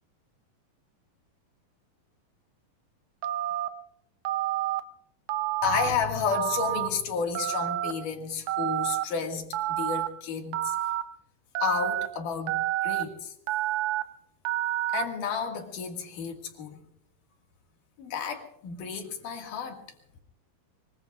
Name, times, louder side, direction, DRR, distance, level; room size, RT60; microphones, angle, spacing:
Telephone, 3.2-3.7 4.2-4.8 5.3-5.9 6.3-6.9 7.3-7.9 8.5-9.0 9.5-10.1 10.5-11.0 11.5-12.1 12.5-13.0 13.5-14.0 14.4-15.0, right 14 dB, 90° right, 1.6 m, -29 dB
voice 1, 5.6-10.8 11.6-13.3 14.9-16.8 18.0-19.8, left 6 dB, 60° left, 3 dB, 3.3 m, -31 dB
24.0 x 23.0 x 2.4 m, 0.76 s
omnidirectional pair, 4.4 m